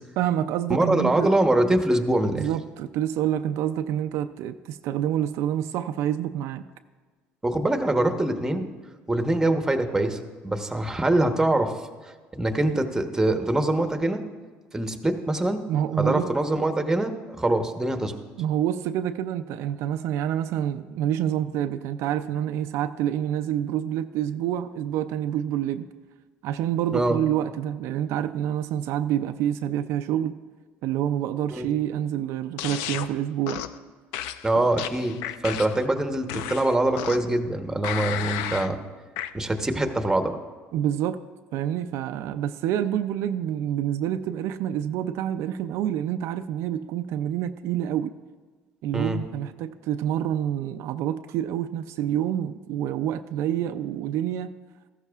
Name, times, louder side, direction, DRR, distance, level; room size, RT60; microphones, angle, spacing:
voice 1, 0.2-1.3 2.3-6.6 15.7-16.3 18.4-25.9 26.4-30.4 30.8-33.6 40.7-41.2 41.5-48.1 48.8-54.5, right 10 dB, 70° right, 9 dB, 0.4 m, -27 dB
voice 2, 0.7-2.5 7.4-8.7 9.1-10.2 10.4-11.7 12.3-14.2 14.7-15.6 16.0-18.1 26.9-27.2 31.5-31.7 34.4-35.2 35.4-38.8 39.3-40.4 48.9-49.2, right 1 dB, 10° right, 6 dB, 1.0 m, -24 dB
sound 1, 32.6-33.1 33.5-33.8 34.1-35.9 36.3-37.4 37.8-38.7 39.2-39.3, left 11 dB, 85° left, 0.4 m, -33 dB
14.5 x 13.0 x 2.4 m, 1.4 s
supercardioid pair, 100°, 5 cm